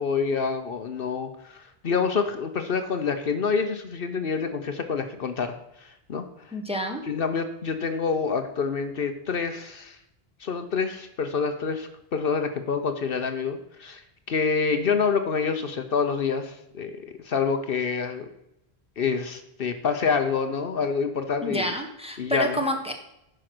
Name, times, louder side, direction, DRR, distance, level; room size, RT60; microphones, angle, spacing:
voice 1, 0.0-6.6 7.1-10.0 10.4-18.3 19.0-21.7 22.2-22.6, left 5 dB, 60° left, 8 dB, 1.0 m, -27 dB
voice 2, 6.5-7.0 21.4-22.9, equal, 5° right, 3 dB, 1.1 m, -28 dB
9.9 x 5.6 x 6.0 m, 0.83 s
omnidirectional pair, 1.1 m